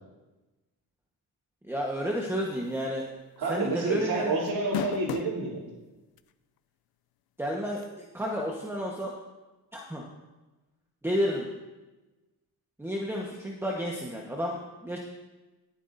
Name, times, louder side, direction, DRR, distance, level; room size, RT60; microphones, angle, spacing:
voice 1, 1.6-3.0 3.5-4.3 7.4-9.1 9.7-10.0 11.0-11.5 12.8-15.0, equal, 5° right, -2 dB, 1.2 m, -31 dB
sound 1, 2.8-3.0 3.4-3.5 4.5-5.4 6.2-6.3 7.8-7.9, left 10 dB, 70° left, 0.6 m, -33 dB
voice 2, 3.4-5.6, right 3 dB, 70° right, -8 dB, 3.5 m, -29 dB
22.5 x 8.2 x 2.6 m, 1.1 s
cardioid pair, 105°, 38 cm